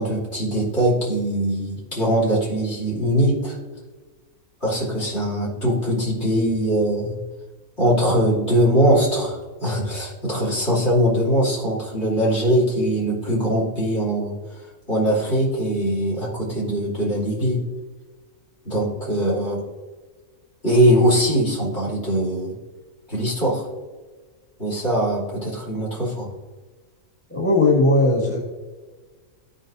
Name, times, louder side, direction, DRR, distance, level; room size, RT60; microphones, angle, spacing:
voice 1, 0.0-3.6 4.6-7.2 7.8-14.4 14.9-17.6 18.6-19.6 20.6-22.6 23.1-23.7 24.6-26.3, equal, 50° left, -6 dB, 3.2 m, -21 dB
voice 2, 27.3-28.4, left 2 dB, 10° left, -3 dB, 1.4 m, -18 dB
14.5 x 5.3 x 2.6 m, 1.3 s
omnidirectional pair, 1.4 m